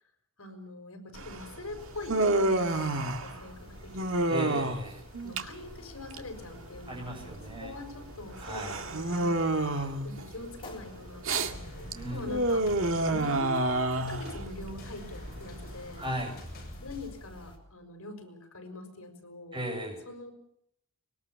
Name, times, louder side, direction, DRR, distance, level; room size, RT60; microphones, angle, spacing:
voice 1, 0.4-4.4 5.2-9.4 10.0-12.7 13.1-16.1 16.8-19.6 20.0-20.3, left 2 dB, 70° left, 6 dB, 5.9 m, -43 dB
Human voice, 1.1-16.4, right 2 dB, 60° right, 2.2 m, -30 dB
sound 1, 1.8-17.6, left 1 dB, 25° left, 3.9 m, -52 dB
voice 2, 4.3-5.0 6.9-7.7 8.4-8.8 9.8-9.9 11.9-12.4 16.0-16.4 19.5-20.0, right 1 dB, 20° right, 2 dB, 7.9 m, -36 dB
sound 2, 11.4-17.1, left 1 dB, 45° left, 7.5 m, -46 dB
24.5 x 22.0 x 7.1 m, 0.72 s
head